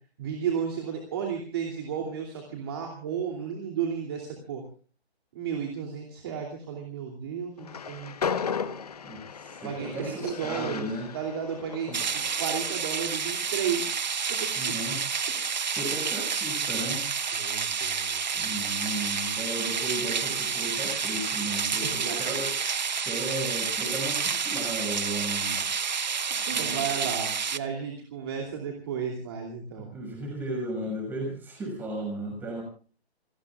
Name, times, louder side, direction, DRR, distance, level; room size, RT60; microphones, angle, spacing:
voice 1, 0.2-4.6 5.3-8.1 9.6-14.0 14.3-14.7 17.3-18.6 21.8-22.4 25.6-25.7 26.5-29.9, right 7 dB, 20° right, 2 dB, 2.8 m, -33 dB
Train, 7.6-12.9, left 6 dB, 35° left, 1.1 m, -35 dB
voice 2, 9.0-11.1 11.9-12.0 14.5-15.0 15.7-17.0 18.4-22.5 23.0-25.6 26.5-27.0 29.7-32.6, right 1 dB, 5° right, 2 dB, 6.0 m, -35 dB
sound 1, 11.9-27.6, right 6 dB, 40° right, 0.9 m, -29 dB
28.5 x 19.5 x 2.4 m, 0.39 s
hypercardioid pair, 170°, 33 cm